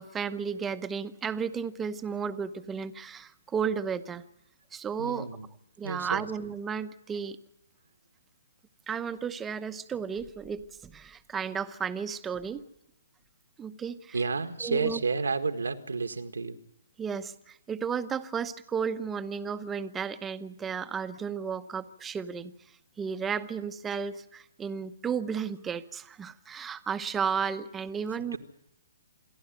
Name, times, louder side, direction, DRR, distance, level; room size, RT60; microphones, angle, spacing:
voice 1, 0.0-4.2 4.7-5.3 5.8-7.4 8.9-12.6 13.6-14.1 14.6-15.0 17.0-22.6 23.0-28.4, right 6 dB, 10° right, 11 dB, 0.9 m, -33 dB
voice 2, 5.0-5.5 5.8-6.3 14.1-16.6 28.3-28.4, right 4 dB, 90° right, 9 dB, 1.7 m, -31 dB
27.0 x 11.0 x 9.0 m, 0.82 s
hypercardioid pair, 145°, 0 cm